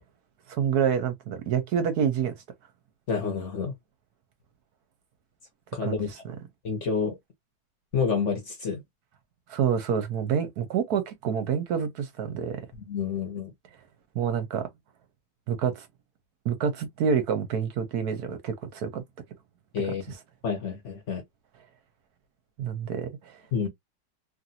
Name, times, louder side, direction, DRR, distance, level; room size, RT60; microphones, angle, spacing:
voice 1, 0.5-2.3 5.8-6.3 9.5-12.6 14.1-14.7 15.5-15.9 16.4-19.0 22.6-23.4, right 7 dB, 70° right, 1.1 m, -27 dB
voice 2, 3.1-3.7 5.7-6.1 6.6-7.2 7.9-8.8 12.8-13.5 19.7-20.0 20.4-21.2 23.5-23.7, left 5 dB, 55° left, 1.0 m, -28 dB
3.0 x 2.5 x 2.6 m
omnidirectional pair, 1.9 m